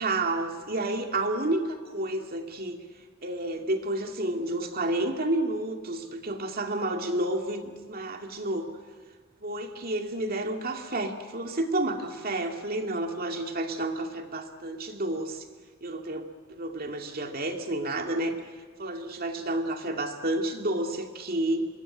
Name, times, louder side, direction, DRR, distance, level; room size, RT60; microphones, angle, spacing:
voice 1, 0.0-2.8 3.2-8.7 9.4-15.4 15.8-16.3 16.6-18.4 18.8-21.7, right 1 dB, 45° right, 4 dB, 2.3 m, -30 dB
25.5 x 21.0 x 9.9 m, 1.5 s
head